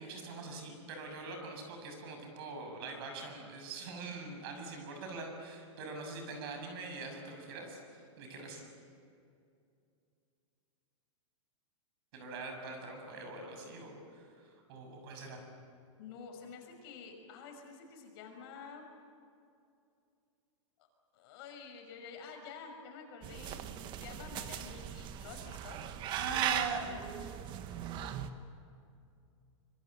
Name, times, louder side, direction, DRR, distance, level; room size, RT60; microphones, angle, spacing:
voice 1, 0.0-8.6 12.1-15.4 26.1-26.8, right 4 dB, 50° right, 4 dB, 6.8 m, -43 dB
voice 2, 16.0-18.8 21.1-23.6 24.0-25.8, left 5 dB, 50° left, 3 dB, 6.1 m, -49 dB
sound 1, 23.2-28.3, right 10 dB, 30° right, 1.3 m, -38 dB
25.5 x 25.0 x 8.0 m, 2.5 s
hypercardioid pair, 150°, 16 cm